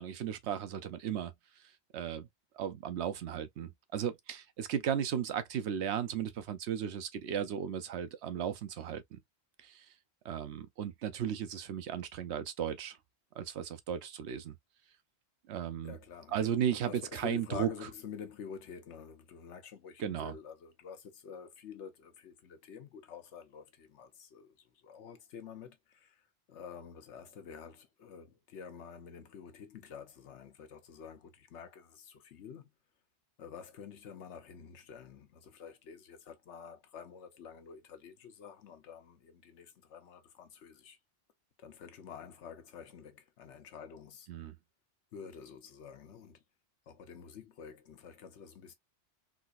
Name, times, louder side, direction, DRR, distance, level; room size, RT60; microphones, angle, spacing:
voice 1, 0.0-1.3 1.9-2.3 2.5-9.2 9.6-9.9 10.2-13.0 13.4-14.6 15.5-16.0 16.3-17.7 20.0-20.3 44.3-44.6, right 9 dB, 80° right, 0.9 m, -35 dB
voice 2, 15.8-16.5 16.9-32.7 33.4-41.0 41.6-44.3 45.1-46.4 46.9-48.7, left 7 dB, 90° left, 1.1 m, -49 dB
3.8 x 2.4 x 2.6 m
omnidirectional pair, 1.1 m